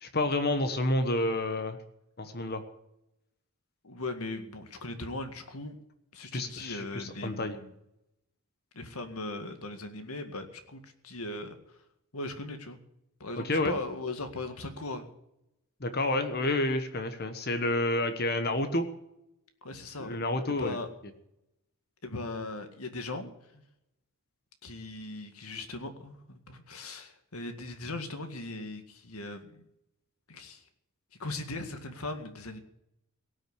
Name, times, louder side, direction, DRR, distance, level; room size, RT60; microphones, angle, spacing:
voice 1, 0.0-1.8 2.2-2.6 6.3-7.6 13.4-13.8 15.8-18.9 20.0-20.8, left 2 dB, 45° left, 8 dB, 1.3 m, -29 dB
voice 2, 3.8-5.7 6.1-7.7 8.7-11.6 12.1-12.8 13.2-15.1 19.6-20.2 20.5-20.9 22.0-23.6 24.6-29.6 30.3-30.6 31.2-32.6, left 2 dB, 80° left, 7 dB, 2.0 m, -39 dB
18.0 x 6.4 x 9.6 m, 0.82 s
head